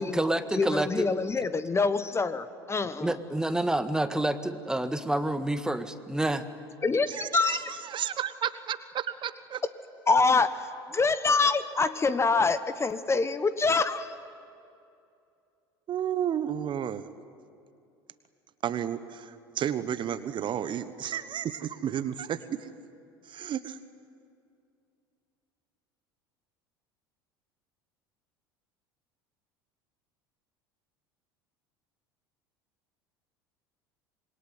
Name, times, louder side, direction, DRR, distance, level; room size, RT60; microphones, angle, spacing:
voice 1, 0.0-1.1 3.0-6.5, right 1 dB, 5° right, 10 dB, 1.6 m, -28 dB
voice 2, 0.5-3.1 6.8-7.6 10.1-14.1, left 4 dB, 20° left, 13 dB, 1.3 m, -25 dB
voice 3, 7.1-9.6 15.9-17.1 18.6-22.7 23.2-23.8, right 9 dB, 40° right, 13 dB, 1.2 m, -32 dB
27.0 x 23.0 x 9.6 m, 2.5 s
figure-of-eight pair, 70°, 13 cm